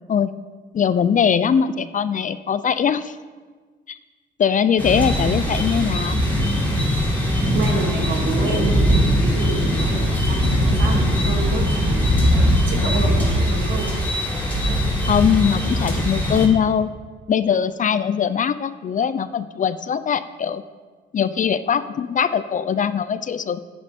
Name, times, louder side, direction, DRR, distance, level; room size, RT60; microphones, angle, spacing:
voice 1, 0.7-3.2 3.9-4.0 4.4-6.2 15.1-16.9 17.3-20.6 21.1-23.6, left 7 dB, 40° left, 14 dB, 0.5 m, -21 dB
sound 1, 4.8-16.5, equal, 10° left, 3.3 m, -20 dB
voice 2, 7.5-8.8 9.2-12.3 12.7-14.0, right 3 dB, 70° right, 0 dB, 2.4 m, -28 dB
10.5 x 9.5 x 4.3 m, 1.4 s
cardioid pair, 90°, 20 cm